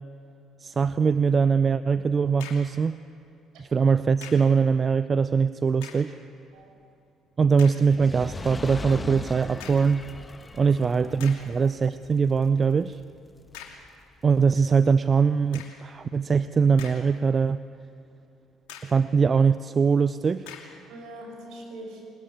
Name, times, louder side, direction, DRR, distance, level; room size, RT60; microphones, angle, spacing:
voice 1, 0.6-3.0 3.7-6.2 7.4-10.1 10.6-13.0 14.2-17.6 18.8-20.5, right 5 dB, 35° right, 14 dB, 0.5 m, -22 dB
sound 1, 2.4-2.8 4.2-4.6 5.7-6.2 6.8-6.9 7.6-7.9 9.6-10.0 10.7-10.8 11.2-11.6 13.5-13.9 15.5-15.9 16.5-17.3 17.7-17.8 18.7-19.1 20.4-20.8, left 7 dB, 70° left, 2.7 m, -44 dB
Fire, 7.8-14.2 14.9-15.0, left 3 dB, 25° left, 1.2 m, -40 dB
voice 2, 10.7-11.1 11.5-11.6 20.9-22.1, right 1 dB, 65° right, 1 dB, 6.4 m, -43 dB
21.5 x 21.0 x 8.5 m, 2.8 s
hypercardioid pair, 50°, 0 cm